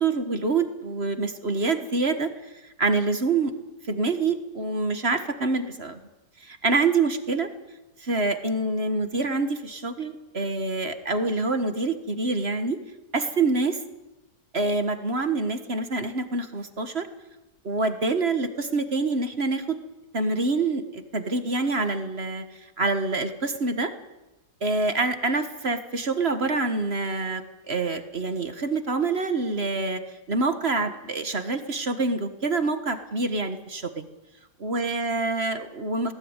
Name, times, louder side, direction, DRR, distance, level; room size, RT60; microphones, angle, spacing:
voice 1, 0.0-2.3 2.6-3.5 3.9-6.0 6.4-7.5 8.0-12.8 13.1-13.8 14.5-17.1 17.6-19.8 20.1-22.4 22.8-23.9 24.6-30.0 30.3-34.1 34.6-36.1, right 3 dB, 35° right, 9 dB, 1.7 m, -26 dB
20.0 x 18.0 x 9.8 m, 1.0 s
omnidirectional pair, 1.9 m